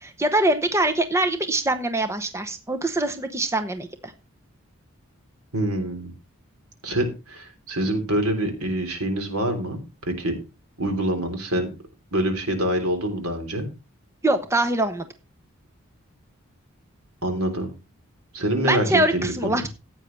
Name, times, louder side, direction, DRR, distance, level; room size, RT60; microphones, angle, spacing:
voice 1, 0.0-4.1 14.2-15.1 18.6-19.7, right 1 dB, 15° right, 8 dB, 0.9 m, -23 dB
voice 2, 5.5-6.1 6.8-10.3 10.8-11.7 12.1-13.7 17.2-17.7 18.3-19.6, right 1 dB, 85° right, 5 dB, 3.6 m, -25 dB
15.0 x 9.1 x 3.3 m, 0.29 s
head